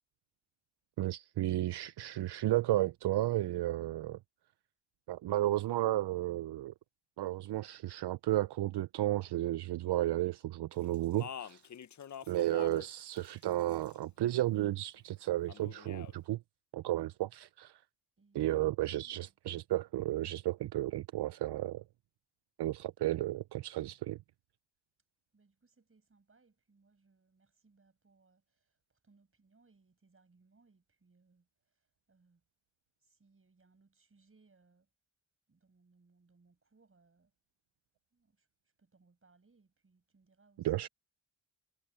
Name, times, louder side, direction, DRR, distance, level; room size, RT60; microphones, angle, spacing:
voice 1, 1.0-4.2 5.1-6.7 7.2-11.6 12.3-16.4 16.7-17.8 18.3-21.8 22.6-24.2 40.6-40.9, right 15 dB, 70° right, 0.5 m, -33 dB
Speech, 10.9-12.9 13.2-14.0 15.5-16.1, left 8 dB, 45° left, 0.7 m, -46 dB
voice 2, 18.2-18.6 19.0-19.3 25.3-32.4 33.0-34.9 35.5-37.3 38.1-38.5 38.8-40.7, right 4 dB, 30° right, 6.7 m, -69 dB
wide cardioid pair, 120°, 42 cm